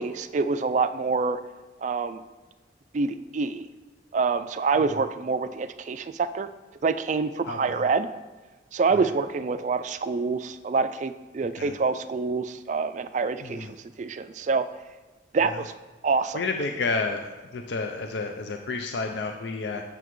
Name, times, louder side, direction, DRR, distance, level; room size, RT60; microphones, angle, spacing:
voice 1, 0.0-1.4 1.8-2.2 2.9-3.7 4.1-6.5 6.8-8.1 8.7-14.6 15.3-15.7 16.0-16.4, right 4 dB, 40° right, 11 dB, 0.3 m, -26 dB
voice 2, 7.5-7.8 8.9-9.1 11.5-11.7 13.4-13.7 15.4-15.6 16.3-17.2 17.5-19.8, left 3 dB, 65° left, 4 dB, 0.5 m, -30 dB
7.9 x 7.0 x 3.1 m, 1.2 s
head